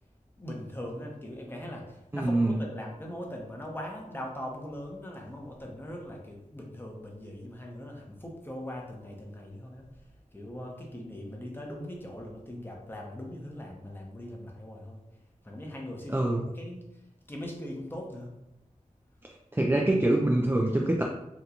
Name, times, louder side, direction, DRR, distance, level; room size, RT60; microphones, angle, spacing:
voice 1, 0.4-15.0 15.4-17.0 17.3-18.4, left 1 dB, 15° left, 0 dB, 0.7 m, -41 dB
voice 2, 2.1-2.6 16.1-16.4 19.5-21.0, right 1 dB, 15° right, -1 dB, 0.4 m, -25 dB
2.9 x 2.2 x 3.7 m, 0.90 s
wide cardioid pair, 60°, 14 cm